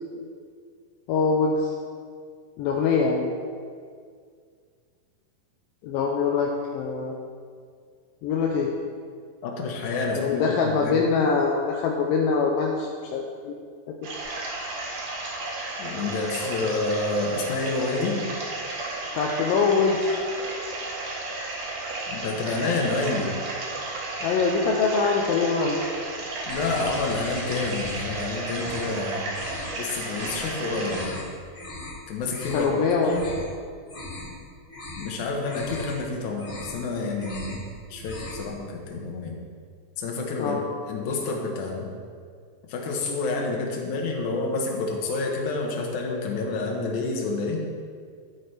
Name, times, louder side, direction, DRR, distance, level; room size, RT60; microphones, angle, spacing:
voice 1, 1.1-1.7 2.6-3.3 5.8-7.2 8.2-8.7 10.1-13.5 13.9-14.0 19.1-20.2 24.2-25.9 32.5-33.2 40.4-40.6, left 5 dB, 80° left, 0 dB, 2.3 m, -24 dB
voice 2, 9.4-11.0 15.8-18.2 22.1-23.3 26.4-29.4 29.8-31.2 32.1-33.2 35.0-37.6 37.9-39.4 40.0-41.9 42.7-47.6, left 3 dB, 65° left, 0 dB, 2.4 m, -29 dB
sound 1, 14.0-31.1, right 2 dB, 55° right, 2.3 m, -33 dB
sound 2, 26.5-28.2 28.5-29.0 29.3-29.7 30.1-30.5 30.8-31.2 31.5-32.0 32.3-32.7 33.1-33.5 33.8-34.4 34.7-35.1 35.4-36.0 36.3-36.8 37.1-37.6 37.9-38.5, left 2 dB, 25° left, 2.2 m, -39 dB
12.0 x 8.8 x 3.3 m, 2.1 s
omnidirectional pair, 4.2 m